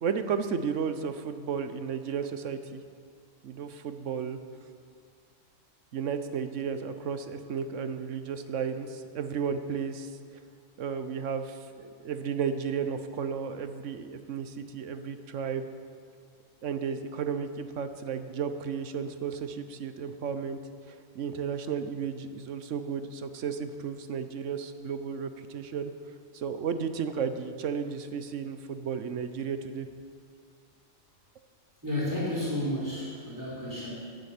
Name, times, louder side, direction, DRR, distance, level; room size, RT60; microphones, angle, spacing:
voice 1, 0.0-2.8 3.4-4.4 5.9-10.1 10.8-15.7 16.6-20.6 20.9-25.9 26.3-29.9, right 6 dB, 65° right, 10 dB, 1.1 m, -33 dB
voice 2, 31.8-33.9, left 1 dB, 15° right, -6 dB, 4.1 m, -31 dB
12.0 x 9.3 x 8.4 m, 2.2 s
omnidirectional pair, 1.4 m